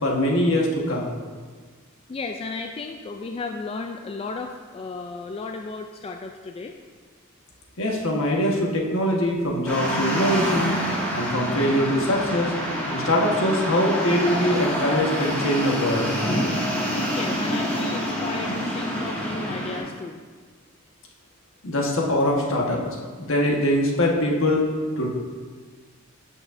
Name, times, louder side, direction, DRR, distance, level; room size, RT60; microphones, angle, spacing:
voice 1, 0.0-1.1 7.8-10.7 11.1-12.5 12.9-16.1 21.6-22.8 23.2-24.7 25.0-25.1, left 1 dB, 65° left, -1 dB, 1.3 m, -22 dB
voice 2, 2.1-6.7 17.1-20.2, left 3 dB, 25° left, 4 dB, 0.3 m, -34 dB
sound 1, 9.7-19.8, equal, 10° left, 1.9 m, -27 dB
12.5 x 6.2 x 2.6 m, 1.5 s
head